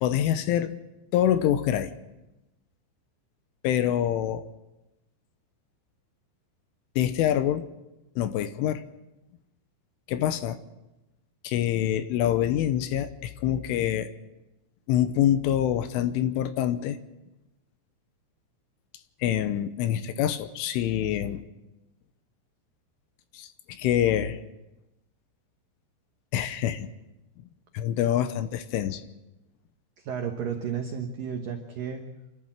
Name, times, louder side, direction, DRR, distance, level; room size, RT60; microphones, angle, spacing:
voice 1, 0.0-0.7 1.1-1.9 3.6-4.5 7.0-7.7 8.2-8.8 10.1-10.6 11.4-14.1 14.9-17.0 19.2-21.4 23.3-24.4 26.3-26.9 27.7-29.0, left 11 dB, 80° left, 11 dB, 3.2 m, -25 dB
voice 2, 30.0-32.1, right 7 dB, 85° right, 4 dB, 1.9 m, -32 dB
28.5 x 12.5 x 7.4 m, 0.98 s
omnidirectional pair, 6.0 m